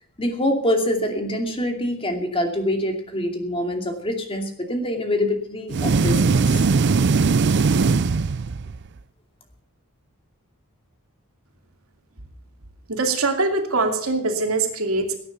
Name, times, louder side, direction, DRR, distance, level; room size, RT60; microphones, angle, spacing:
voice 1, 0.2-6.7, left 1 dB, 25° left, 4 dB, 2.6 m, -25 dB
sound 1, 5.7-8.9, right 4 dB, 55° right, 0.5 m, -19 dB
voice 2, 12.9-15.1, right 3 dB, 75° right, 4 dB, 2.7 m, -23 dB
18.0 x 9.5 x 6.9 m, 0.63 s
head